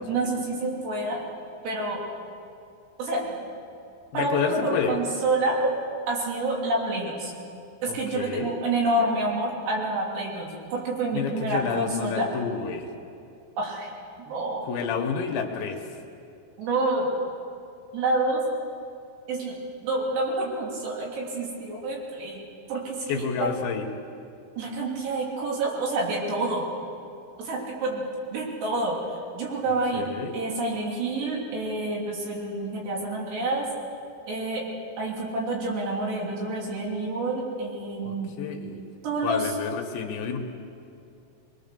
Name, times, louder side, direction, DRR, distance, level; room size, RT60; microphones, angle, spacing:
voice 1, 0.1-1.2 1.6-2.0 3.0-3.4 4.1-5.7 6.1-7.3 7.8-12.3 13.6-13.9 14.3-14.7 16.6-17.1 17.9-18.4 19.3-22.4 22.7-23.5 24.6-26.7 27.4-29.0 29.3-33.7 34.3-34.7 35.0-38.4 39.0-39.5, right 2 dB, 60° right, -2 dB, 4.9 m, -28 dB
voice 2, 4.1-5.0 7.9-8.5 11.1-12.9 14.7-15.8 23.1-23.9 29.9-30.3 38.0-38.8 39.2-40.4, left 6 dB, 75° left, 4 dB, 3.3 m, -29 dB
22.5 x 21.0 x 6.8 m, 2.6 s
omnidirectional pair, 5.5 m